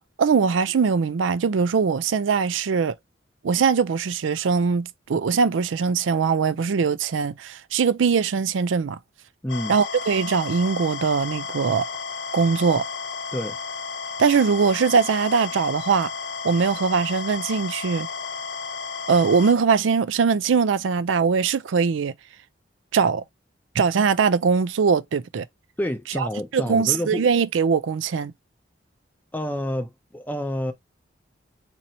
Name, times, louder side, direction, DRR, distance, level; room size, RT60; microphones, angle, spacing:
voice 1, 0.2-2.9 3.4-9.0 9.7-11.9 12.3-12.8 14.2-16.1 16.4-18.1 19.1-22.1 22.9-23.2 23.8-25.5 26.2-26.3 26.5-28.3, right 5 dB, 85° right, 0.4 m, -21 dB
sound 1, 9.5-19.5, left 5 dB, 75° left, 0.7 m, -33 dB
voice 2, 25.8-27.3 29.3-30.7, equal, 10° left, 0.6 m, -28 dB
2.8 x 2.6 x 4.2 m
head